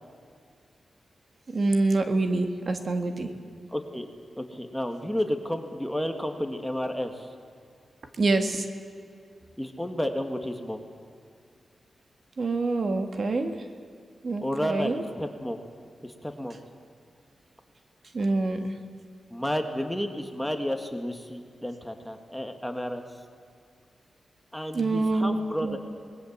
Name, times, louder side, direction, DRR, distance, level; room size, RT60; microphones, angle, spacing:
voice 1, 1.5-3.3 8.2-8.7 12.4-13.5 14.2-15.0 18.1-18.7 24.7-25.8, right 2 dB, 45° right, 6 dB, 1.8 m, -26 dB
voice 2, 3.7-4.1 4.4-7.3 9.6-10.8 14.4-15.6 16.0-16.6 19.3-23.0 24.5-25.8, equal, ahead, 5 dB, 1.8 m, -31 dB
27.0 x 20.0 x 7.4 m, 2.3 s
wide cardioid pair, 115°, 0 cm